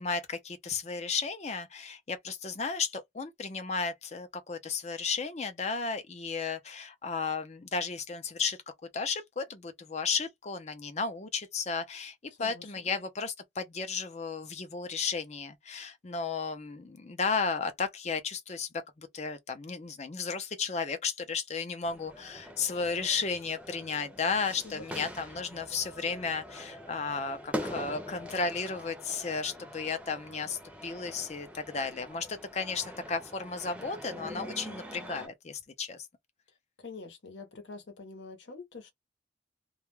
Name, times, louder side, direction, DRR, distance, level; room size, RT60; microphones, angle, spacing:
voice 1, 0.0-8.6 8.9-12.1 12.4-18.7 19.0-36.0, left 5 dB, 35° left, 0.5 m, -34 dB
voice 2, 12.3-13.0 24.6-25.1 36.8-38.9, left 3 dB, 70° left, 0.9 m, -46 dB
sound 1, 21.8-35.3, equal, 5° right, 0.7 m, -44 dB
2.3 x 2.1 x 3.0 m
head